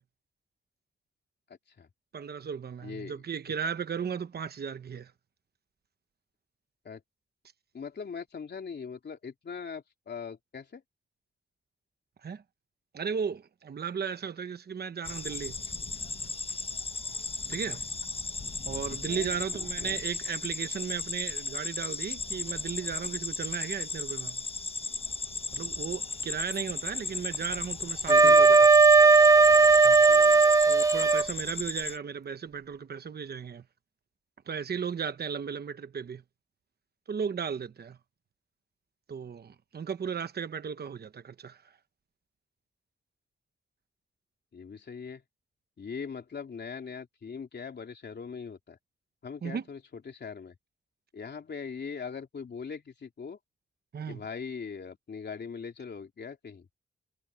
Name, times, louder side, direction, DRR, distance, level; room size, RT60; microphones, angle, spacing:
voice 1, 2.1-5.1 12.2-12.4 12.9-15.6 17.5-17.8 18.7-24.4 25.5-28.6 29.8-30.1 30.7-33.6 34.5-36.2 37.1-38.0 39.1-41.6 49.4-49.6 53.9-54.2, right 6 dB, 55° right, 0.9 m, -35 dB
voice 2, 2.8-3.1 6.8-7.0 7.7-10.8 18.9-20.0 28.1-28.7 30.1-30.6 44.5-45.2 45.8-48.8 49.2-50.6 51.1-53.4 54.1-56.7, left 6 dB, 60° left, 3.4 m, -41 dB
sound 1, 15.0-32.0, left 3 dB, 30° left, 1.1 m, -36 dB
Wind instrument woodwind instrument, 28.1-31.3, right 4 dB, 15° right, 0.4 m, -17 dB
wide cardioid pair, 100°, 20 cm